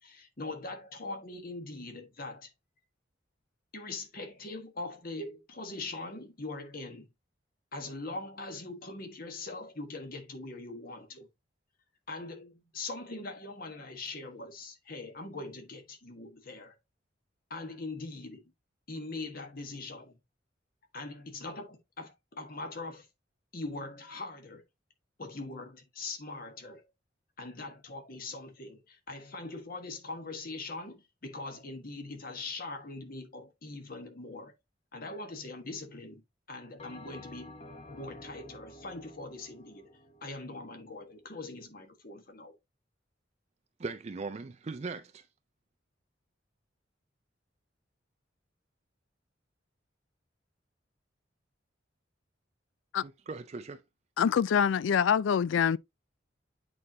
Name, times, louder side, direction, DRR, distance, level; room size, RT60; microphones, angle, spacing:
voice 1, 0.0-2.5 3.7-7.1 7.7-11.3 12.1-16.7 17.5-18.4 18.9-20.1 20.9-23.1 23.5-24.6 25.2-26.9 27.4-34.5 34.9-36.2 36.5-39.9 40.2-42.5, left 2 dB, 50° left, 1.4 m, -42 dB
Bell, 36.8-41.4, left 1 dB, 35° left, 1.0 m, -51 dB
voice 2, 43.8-45.3 53.0-53.8, right 3 dB, 35° right, 0.4 m, -39 dB
voice 3, 54.2-55.8, left 7 dB, 90° left, 0.3 m, -25 dB
8.5 x 4.3 x 2.8 m
head